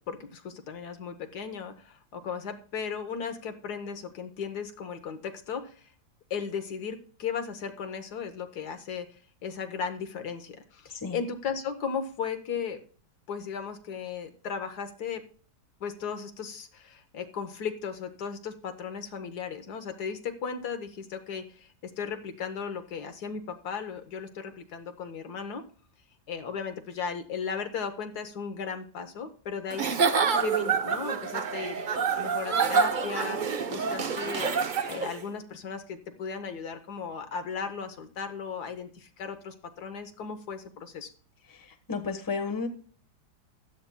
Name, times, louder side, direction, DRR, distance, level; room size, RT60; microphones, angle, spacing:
voice 1, 0.1-5.9 6.3-12.8 13.3-15.2 15.8-25.7 26.3-30.0 30.4-41.1, left 6 dB, 70° left, 8 dB, 1.5 m, -36 dB
Giggle / Chuckle chortle, 29.7-35.2, right 6 dB, 60° right, 0.5 m, -27 dB
voice 2, 41.5-42.7, left 4 dB, 15° left, 3 dB, 1.0 m, -33 dB
15.5 x 11.5 x 2.2 m, 0.43 s
omnidirectional pair, 1.8 m